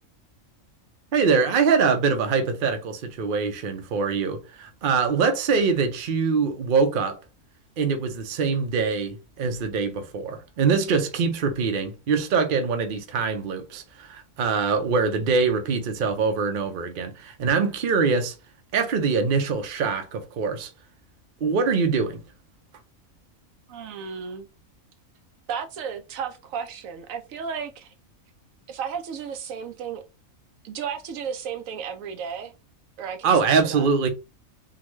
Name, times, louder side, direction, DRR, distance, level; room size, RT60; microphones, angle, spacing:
voice 1, 1.1-7.2 7.8-18.3 18.7-20.7 21.4-22.2 33.2-34.1, right 5 dB, 50° right, 0.7 m, -23 dB
voice 2, 23.7-24.5 25.5-27.9 28.7-30.0 30.6-32.5 33.0-33.3 33.7-33.9, right 7 dB, 80° right, 1.0 m, -33 dB
3.8 x 2.2 x 3.1 m
omnidirectional pair, 1.4 m